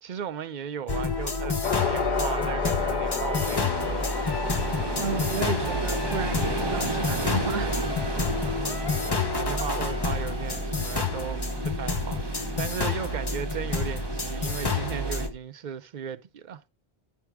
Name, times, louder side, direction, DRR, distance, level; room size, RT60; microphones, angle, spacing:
voice 1, 0.0-1.6 1.8-3.8 4.3-4.4 9.0-16.7, right 8 dB, 55° right, 0.6 m, -36 dB
sound 1, 0.9-15.3, left 3 dB, 25° left, 0.6 m, -29 dB
sound 2, 1.6-10.2, left 5 dB, 50° left, 1.4 m, -33 dB
sound 3, 3.3-15.3, right 2 dB, 25° right, 0.8 m, -35 dB
voice 2, 5.0-7.8, right 6 dB, 75° right, 1.0 m, -33 dB
10.5 x 3.5 x 4.6 m
omnidirectional pair, 1.1 m